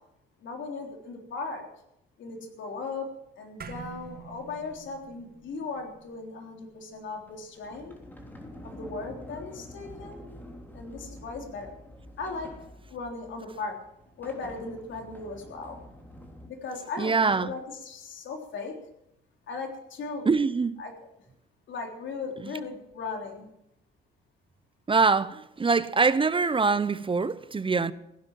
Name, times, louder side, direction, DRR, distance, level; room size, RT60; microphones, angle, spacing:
voice 1, 0.4-1.7 2.2-3.1 3.4-7.9 8.6-10.2 10.7-11.7 12.2-12.5 12.9-13.8 14.2-15.8 16.5-18.7 19.5-20.3 20.8-20.9 21.7-23.5, left 4 dB, 70° left, 3.6 m, -37 dB
sound 1, 3.6-8.2, right 6 dB, 50° right, 1.6 m, -47 dB
Sliding door, 7.3-16.5, equal, 10° left, 3.3 m, -47 dB
voice 2, 17.0-17.5 20.2-20.8 24.9-27.9, right 4 dB, 25° right, 0.7 m, -24 dB
16.0 x 10.5 x 7.4 m
cardioid pair, 90°, 20 cm